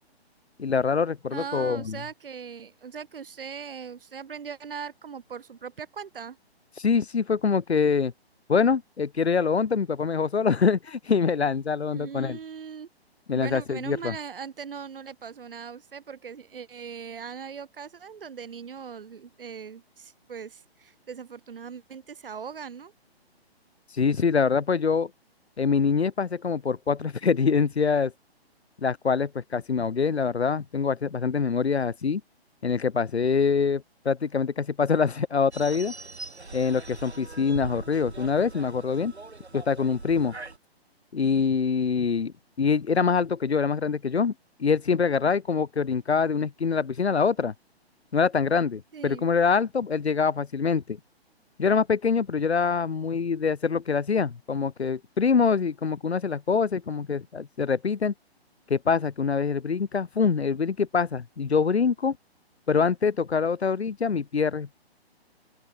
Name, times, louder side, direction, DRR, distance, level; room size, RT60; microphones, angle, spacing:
voice 1, 0.6-2.0 6.8-8.1 8.5-12.4 13.3-14.1 23.9-25.1 25.6-28.1 28.8-32.2 32.6-35.9 36.5-39.1 39.5-40.4 41.1-44.3 44.6-47.5 48.1-51.0 51.6-58.1 58.7-62.2 62.7-64.7, left 5 dB, 80° left, 0.9 m, -24 dB
voice 2, 1.3-6.4 11.8-12.9 13.3-22.9 48.9-49.3, right 6 dB, 55° right, 4.0 m, -39 dB
sound 1, 35.5-40.6, right 3 dB, 80° right, 3.1 m, -41 dB
open air
figure-of-eight pair, 135°, 32 cm